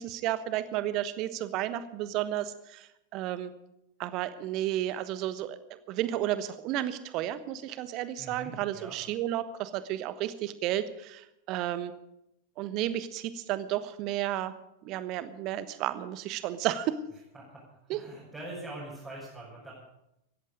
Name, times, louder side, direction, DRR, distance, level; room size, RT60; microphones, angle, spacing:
voice 1, 0.0-3.5 4.0-5.6 5.9-11.9 12.6-14.5 14.8-17.0 17.9-18.0, right 13 dB, 40° right, 13 dB, 1.1 m, -32 dB
voice 2, 8.2-8.9 17.3-17.6 17.9-19.7, right 1 dB, 15° right, -6 dB, 6.3 m, -43 dB
17.0 x 14.5 x 5.2 m, 0.85 s
figure-of-eight pair, 90°, 0 cm